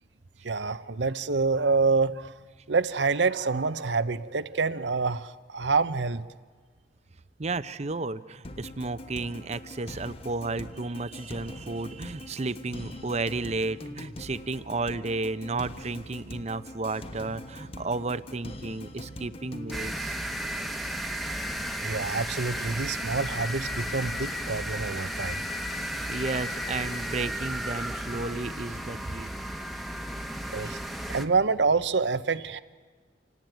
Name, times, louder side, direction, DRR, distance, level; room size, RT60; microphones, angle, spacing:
voice 1, 0.4-2.3 2.7-6.2 21.8-25.4 30.5-30.8 31.1-32.6, right 4 dB, 85° right, 12 dB, 0.9 m, -27 dB
voice 2, 7.4-20.2 25.8-29.3, right 3 dB, 40° right, 14 dB, 0.7 m, -33 dB
sound 1, 8.4-19.9, left 1 dB, 35° left, 1.2 m, -43 dB
sound 2, 19.7-31.3, equal, ahead, 1.1 m, -34 dB
27.5 x 18.0 x 9.3 m, 1.5 s
head